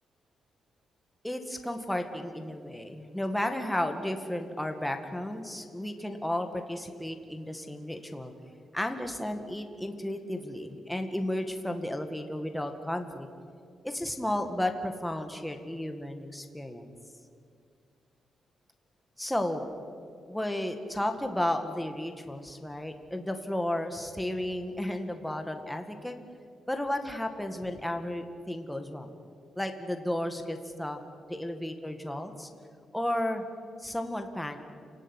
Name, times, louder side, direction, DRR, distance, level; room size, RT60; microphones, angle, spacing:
voice 1, 1.2-8.3 8.7-13.3 13.8-16.9 19.2-19.7 20.3-26.2 26.7-29.1 29.6-31.0 31.3-32.5 32.9-33.4 33.8-34.6, left 1 dB, 5° left, 5 dB, 1.9 m, -33 dB
28.0 x 18.0 x 10.0 m, 2.3 s
wide cardioid pair, 140°, 0 cm